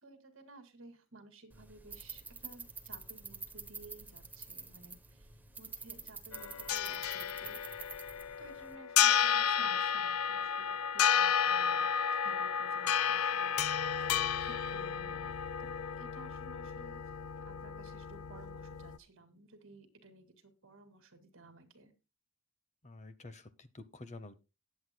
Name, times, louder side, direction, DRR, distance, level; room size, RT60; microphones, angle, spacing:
voice 1, 0.0-5.3 5.6-7.6 8.4-11.8 12.2-13.9 14.4-15.3 15.6-17.0 17.5-21.9, right 2 dB, 60° right, 8 dB, 2.1 m, -56 dB
sound 1, 1.5-8.8, right 4 dB, 10° right, 0.8 m, -48 dB
sound 2, 6.3-19.0, left 8 dB, 80° left, 0.5 m, -32 dB
voice 2, 22.8-24.3, left 2 dB, 30° left, 13 dB, 0.8 m, -49 dB
19.0 x 7.9 x 2.2 m, 0.28 s
head